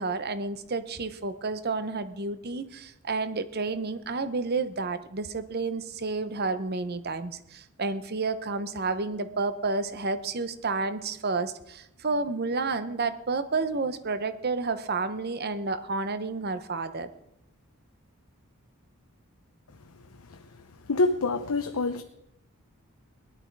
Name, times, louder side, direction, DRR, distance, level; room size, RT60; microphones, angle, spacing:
voice 1, 0.0-17.1, right 3 dB, 45° right, 12 dB, 0.8 m, -30 dB
voice 2, 20.9-22.0, left 3 dB, 80° left, 6 dB, 0.8 m, -26 dB
18.5 x 11.5 x 4.7 m, 0.84 s
head